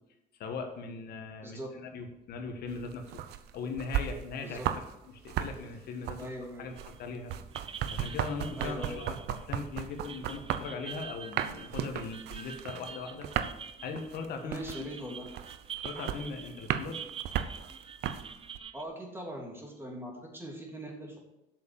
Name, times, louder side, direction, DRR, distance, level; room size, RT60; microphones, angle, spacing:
voice 1, 0.4-3.1 3.5-6.2 6.6-7.3 7.9-13.3 13.8-15.2 15.8-17.0, left 4 dB, 70° left, 4 dB, 1.5 m, -40 dB
sound 1, 2.7-4.9 5.2-18.6, right 10 dB, 75° right, 0.8 m, -36 dB
voice 2, 6.2-6.7 8.6-9.0 14.4-15.3 18.7-21.2, equal, 15° right, 0 dB, 3.0 m, -41 dB
sound 2, 6.8-7.0 7.3-18.8, right 7 dB, 35° right, 0.8 m, -46 dB
8.3 x 6.7 x 7.1 m, 0.95 s
cardioid pair, 110°, 17 cm